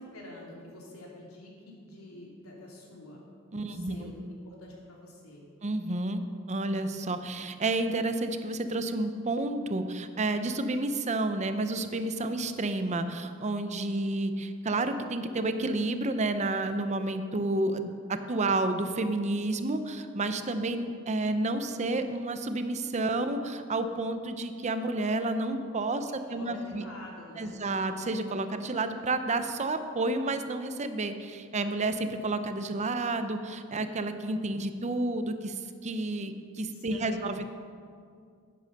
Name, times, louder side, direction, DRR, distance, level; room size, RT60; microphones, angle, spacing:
voice 1, 0.0-3.2 3.6-5.4 26.3-27.6 36.7-37.2, left 1 dB, 85° left, -2 dB, 3.0 m, -47 dB
voice 2, 3.5-4.1 5.6-6.2 6.5-26.8 27.4-37.5, right 2 dB, 35° right, 9 dB, 0.6 m, -30 dB
10.5 x 9.2 x 6.5 m, 2.2 s
head